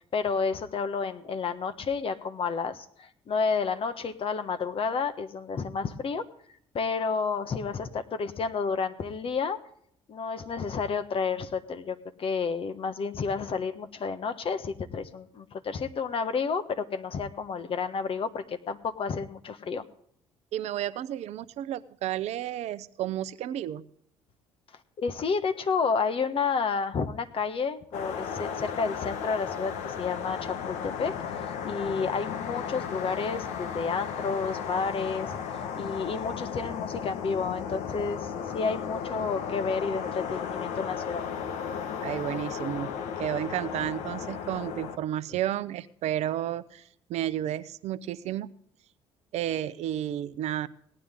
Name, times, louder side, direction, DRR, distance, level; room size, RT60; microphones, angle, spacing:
voice 1, 0.1-6.3 6.7-9.6 10.1-19.8 25.0-31.1 31.6-35.4 35.7-41.2, left 5 dB, 50° left, 9 dB, 1.3 m, -30 dB
voice 2, 20.5-23.8 42.0-42.9 43.2-48.5 49.3-50.7, right 12 dB, 65° right, 15 dB, 0.7 m, -32 dB
sound 1, 27.9-45.0, left 7 dB, 75° left, 1.1 m, -35 dB
18.0 x 9.9 x 3.6 m, 0.66 s
hypercardioid pair, 60°, 12 cm